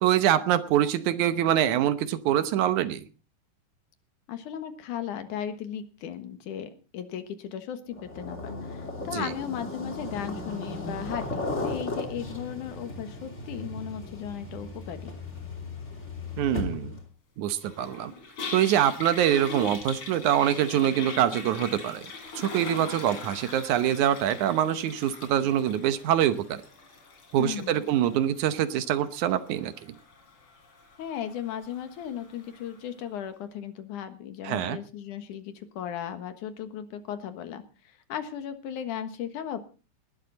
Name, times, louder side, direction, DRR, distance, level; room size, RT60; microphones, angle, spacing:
voice 1, 0.0-3.0 9.1-9.3 16.4-17.0 17.4-18.1 18.5-26.6 27.3-29.9 34.4-34.8, right 11 dB, 75° right, 12 dB, 2.3 m, -25 dB
voice 2, 4.3-15.1 27.4-27.8 31.0-39.6, left 9 dB, 85° left, 9 dB, 2.9 m, -36 dB
sound 1, 7.9-17.0, left 2 dB, 25° left, 2.8 m, -36 dB
Toilet flush, 17.6-32.8, left 4 dB, 45° left, 3.7 m, -42 dB
19.5 x 12.0 x 4.0 m, 0.35 s
omnidirectional pair, 3.5 m